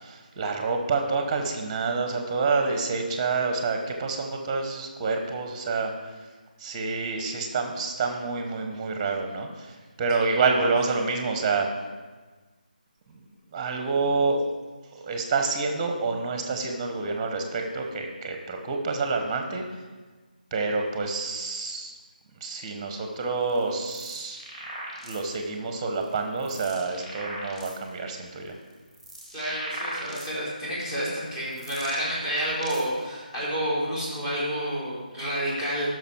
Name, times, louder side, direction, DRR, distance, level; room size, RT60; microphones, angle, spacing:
voice 1, 0.0-5.9 6.6-11.7 13.5-14.4 15.0-19.6 20.5-21.9 22.4-24.4 25.0-28.5, right 4 dB, 15° right, 4 dB, 1.0 m, -28 dB
sound 1, 23.4-25.4 26.0-27.9 28.5-30.6 31.2-33.0, right 1 dB, 5° left, 2.1 m, -39 dB
voice 2, 29.3-35.9, equal, 25° left, -7 dB, 3.3 m, -29 dB
12.0 x 6.3 x 4.5 m, 1.3 s
figure-of-eight pair, 155°, 5 cm